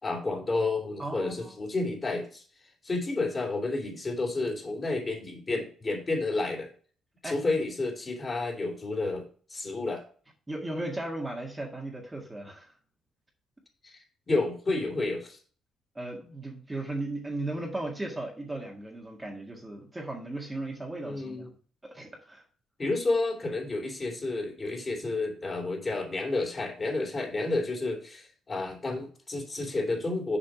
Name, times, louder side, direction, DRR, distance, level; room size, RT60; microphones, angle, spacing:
voice 1, 0.0-2.4 2.8-6.7 7.2-9.2 9.5-10.0 13.8-14.0 14.3-15.4 21.0-21.5 22.8-30.4, left 2 dB, 30° left, 1 dB, 2.9 m, -30 dB
voice 2, 1.0-1.6 7.2-7.4 10.5-12.7 16.0-21.5 21.8-22.4, right 2 dB, 15° right, -1 dB, 1.8 m, -36 dB
7.1 x 5.0 x 6.2 m, 0.43 s
cardioid pair, 90°, 0 cm